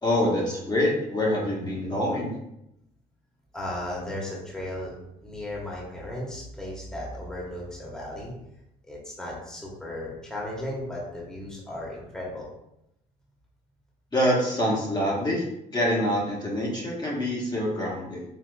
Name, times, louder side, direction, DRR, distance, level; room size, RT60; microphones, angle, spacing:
voice 1, 0.0-2.3 14.1-15.4 15.7-18.2, left 1 dB, 25° left, -4 dB, 1.3 m, -25 dB
voice 2, 3.5-4.9 5.2-8.3 8.8-12.5, left 1 dB, 5° left, -4 dB, 1.3 m, -35 dB
4.9 x 3.3 x 2.3 m, 0.83 s
supercardioid pair, 75°, 18 cm